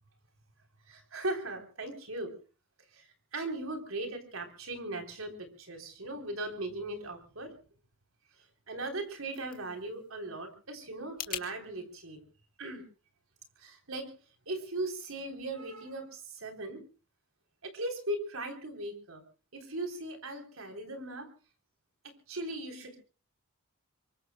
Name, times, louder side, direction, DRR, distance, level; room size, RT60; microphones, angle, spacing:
voice 1, 0.9-2.4 2.9-7.5 8.7-12.2 12.6-12.8 13.6-14.1 14.5-16.8 17.6-19.2 19.5-21.3 22.0-23.0, right 2 dB, 80° right, 4 dB, 3.6 m, -38 dB
sound 1, 8.9-11.5, left 9 dB, 40° left, 2.2 m, -44 dB
26.5 x 23.5 x 2.2 m, 0.36 s
head